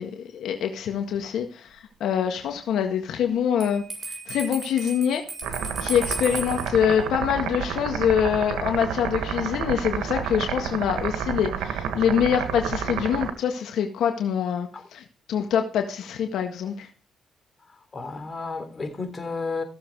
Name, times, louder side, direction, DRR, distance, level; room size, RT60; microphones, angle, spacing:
voice 1, 0.0-5.3 5.8-16.9, left 8 dB, 75° left, 1.7 m, -25 dB
Bell, 3.6-6.7, right 2 dB, 35° right, 5.9 m, -35 dB
sound 1, 5.4-13.3, right 8 dB, 85° right, 1.8 m, -30 dB
voice 2, 17.7-19.6, left 4 dB, 30° left, 3.5 m, -32 dB
16.0 x 7.3 x 4.8 m
cardioid pair, 90°, 0 cm